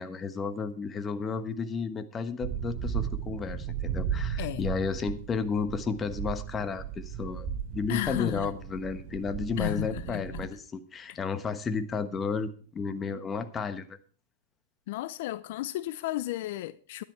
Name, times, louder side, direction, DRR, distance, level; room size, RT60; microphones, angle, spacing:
voice 1, 0.0-7.5 7.7-14.0, left 5 dB, 20° left, 1.2 m, -32 dB
sound 1, 2.4-10.5, right 8 dB, 40° right, 3.9 m, -35 dB
voice 2, 4.4-4.7 7.9-8.5 9.6-10.5 11.1-11.2 14.9-17.0, left 16 dB, 65° left, 0.5 m, -33 dB
12.5 x 10.5 x 4.6 m
hypercardioid pair, 115°, 0 cm